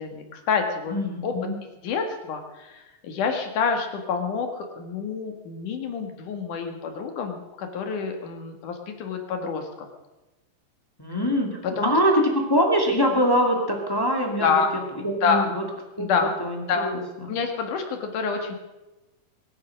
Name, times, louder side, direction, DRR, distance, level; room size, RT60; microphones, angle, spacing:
voice 1, 0.0-0.9 1.2-1.3 1.8-9.7 11.6-12.0 14.4-14.7 15.2-15.5 16.0-16.4 16.7-16.9 17.3-18.5, left 5 dB, 65° left, 4 dB, 3.2 m, -27 dB
voice 2, 0.9-1.6 11.0-14.6 15.0-15.6 16.0-17.3, equal, 10° left, 1 dB, 1.3 m, -24 dB
22.0 x 9.5 x 6.4 m, 1.1 s
omnidirectional pair, 4.2 m